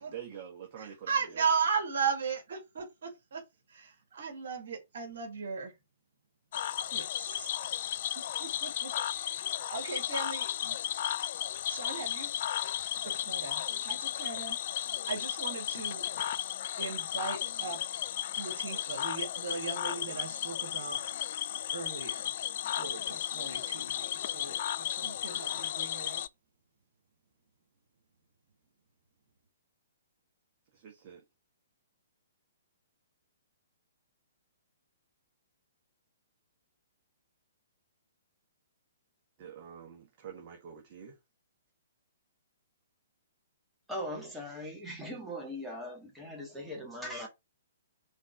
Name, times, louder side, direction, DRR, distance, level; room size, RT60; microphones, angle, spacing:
voice 1, 0.0-1.4 30.7-31.2 39.4-41.2, right 8 dB, 35° right, 1.5 m, -46 dB
voice 2, 0.8-3.4 3.7-5.7 6.8-7.5 8.4-9.4 9.7-10.8 11.7-12.3 13.0-14.6 15.1-16.0 16.8-17.8 18.4-21.0 21.7-22.3 22.8-26.2, right 5 dB, 55° right, 2.3 m, -37 dB
Cricket / Frog, 6.5-26.3, left 11 dB, 45° left, 0.3 m, -34 dB
voice 3, 43.9-47.3, equal, 5° right, 1.7 m, -40 dB
5.1 x 4.2 x 5.9 m
figure-of-eight pair, 120°, 0 cm